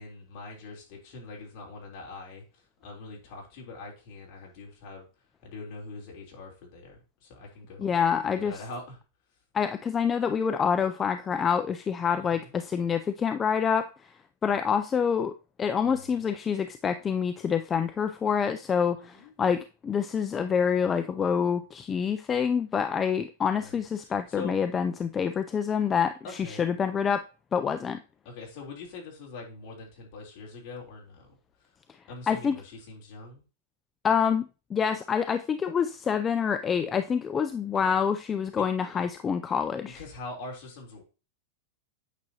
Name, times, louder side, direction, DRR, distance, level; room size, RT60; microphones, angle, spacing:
voice 1, 0.0-5.1 5.4-7.9 8.3-9.0 12.1-12.5 15.8-16.1 19.0-19.3 23.5-24.5 26.2-26.7 28.2-31.3 31.6-31.7 32.1-33.4 37.7-37.9 38.9-39.0 39.9-41.0, left 3 dB, 45° left, -1 dB, 3.4 m, -43 dB
voice 2, 7.8-8.6 9.5-14.1 14.4-15.3 15.6-27.2 27.5-28.0 32.3-32.6 34.0-40.0, left 7 dB, 15° left, 10 dB, 0.4 m, -27 dB
9.0 x 6.0 x 2.8 m, 0.32 s
supercardioid pair, 155°, 0 cm